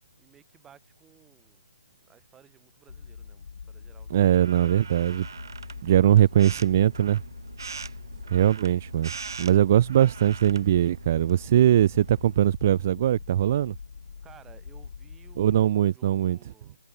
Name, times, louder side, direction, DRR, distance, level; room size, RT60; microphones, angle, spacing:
voice 1, 0.2-1.6 2.0-4.3 5.9-6.2 6.5-6.6 8.1-8.5 14.2-16.8, right 9 dB, 10° right, 5.8 m, -57 dB
sound 1, 2.9-15.6, left 5 dB, 65° left, 1.8 m, -44 dB
voice 2, 4.1-5.3 5.8-7.2 8.3-9.1 9.4-13.7 15.4-16.4, right 11 dB, 35° right, 0.4 m, -21 dB
sound 2, 4.2-12.5, right 5 dB, 70° right, 1.3 m, -43 dB
hypercardioid pair, 165°, 2 cm